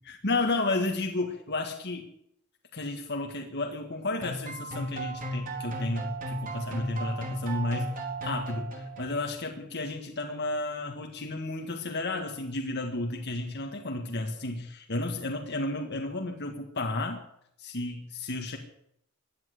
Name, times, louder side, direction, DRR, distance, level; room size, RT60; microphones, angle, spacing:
voice 1, 0.1-2.1 2.7-17.2 17.6-18.6, left 2 dB, 50° left, 2 dB, 1.7 m, -32 dB
sound 1, 4.2-9.4, right 1 dB, 35° right, 3.7 m, -35 dB
16.0 x 11.0 x 8.0 m, 0.73 s
head